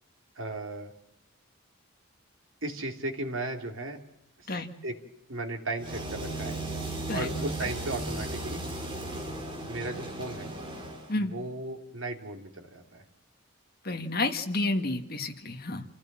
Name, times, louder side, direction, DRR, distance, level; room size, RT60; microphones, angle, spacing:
voice 1, 0.4-0.9 2.6-4.0 4.4-4.5 4.8-4.9 5.3-6.6 7.1-8.6 9.7-10.5 11.2-13.0, right 2 dB, 65° right, 4 dB, 2.9 m, -36 dB
sound 1, 5.8-11.1, right 2 dB, 25° right, 3.8 m, -36 dB
voice 2, 13.8-15.8, left 2 dB, 45° left, 4 dB, 1.9 m, -30 dB
27.5 x 16.0 x 7.4 m, 0.85 s
head